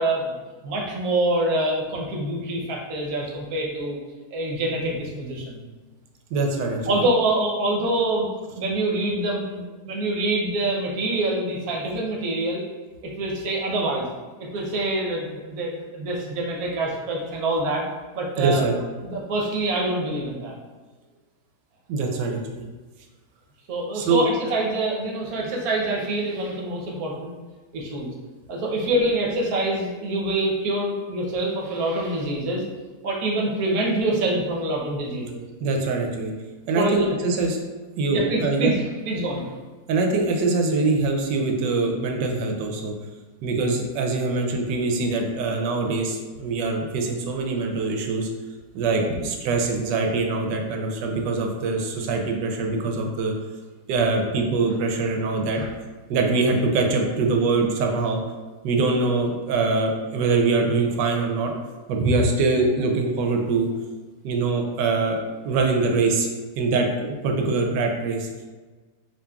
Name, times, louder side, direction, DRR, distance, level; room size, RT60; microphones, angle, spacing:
voice 1, 0.0-4.0 4.3-5.6 6.9-8.3 8.6-12.6 13.0-14.1 14.4-17.8 18.1-18.6 19.0-20.5 23.7-27.3 27.7-28.1 28.5-32.6 33.0-35.4 36.7-37.1 38.1-39.4 49.0-49.1 55.5-55.7, right 1 dB, 65° right, -1 dB, 1.1 m, -25 dB
voice 2, 6.3-7.0 18.4-18.8 21.9-22.6 23.9-24.3 35.6-36.3 36.7-37.6 38.0-38.7 39.9-42.9 43.4-48.3 48.7-53.3 53.9-55.6 56.1-58.2 58.6-61.5 61.9-63.7 64.2-66.3 66.6-68.3, right 3 dB, 85° right, 2 dB, 1.2 m, -23 dB
5.1 x 2.8 x 2.3 m, 1.3 s
omnidirectional pair, 1.9 m